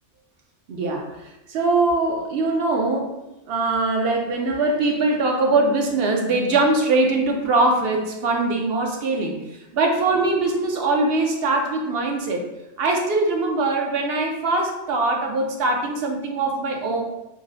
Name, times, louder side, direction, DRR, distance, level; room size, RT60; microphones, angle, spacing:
voice 1, 0.7-1.1 1.5-3.1 3.5-9.4 9.7-12.4 12.8-17.0, right 2 dB, 60° right, 1 dB, 0.8 m, -22 dB
6.0 x 2.0 x 2.6 m, 0.96 s
omnidirectional pair, 1.3 m